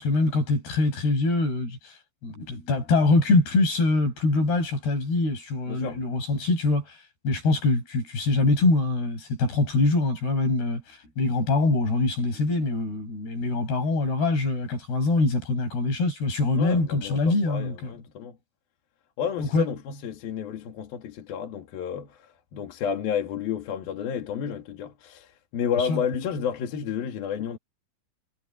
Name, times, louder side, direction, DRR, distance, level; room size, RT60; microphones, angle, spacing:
voice 1, 0.0-1.9 2.2-7.0 7.2-10.8 11.2-17.9 19.4-19.7 25.9-26.0, left 3 dB, 85° left, 10.0 m, -24 dB
voice 2, 5.7-6.0 16.6-18.4 19.2-27.6, left 8 dB, 70° left, 3.9 m, -31 dB
omnidirectional pair, 4.5 m